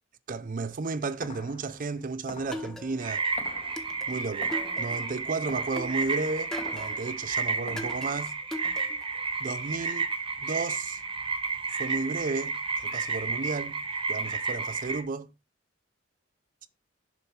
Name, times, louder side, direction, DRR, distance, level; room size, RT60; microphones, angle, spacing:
voice 1, 0.3-3.2 4.1-8.3 9.4-10.1 10.4-11.0 11.8-13.8 14.1-15.3, right 3 dB, 45° right, 0.5 m, -33 dB
sound 1, 0.6-8.0, left 3 dB, 35° left, 0.7 m, -48 dB
sound 2, 2.5-3.3 3.8-5.2 5.8-7.2 7.8-9.2, left 1 dB, ahead, 0.8 m, -40 dB
sound 3, 3.0-15.0, right 4 dB, 25° right, 0.9 m, -32 dB
6.8 x 5.6 x 4.3 m
head